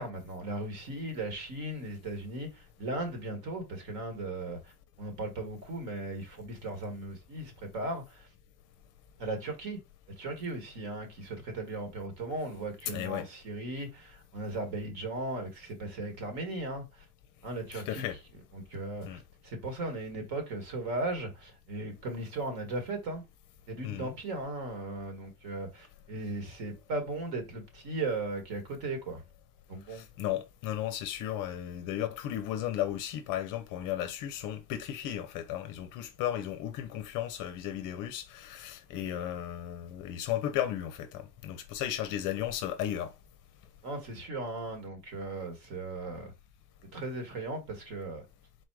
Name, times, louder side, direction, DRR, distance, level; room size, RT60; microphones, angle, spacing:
voice 1, 0.0-4.7 5.0-8.3 9.2-9.8 10.2-17.0 17.4-18.0 18.5-23.2 23.7-29.2 29.7-30.0 43.8-46.3 46.9-48.2, right 2 dB, 50° right, 1.7 m, -37 dB
voice 2, 12.9-13.3 17.7-18.2 19.0-19.2 23.8-24.1 29.9-43.1, left 11 dB, 40° left, 0.6 m, -35 dB
4.1 x 2.4 x 4.6 m
supercardioid pair, 150°, 47 cm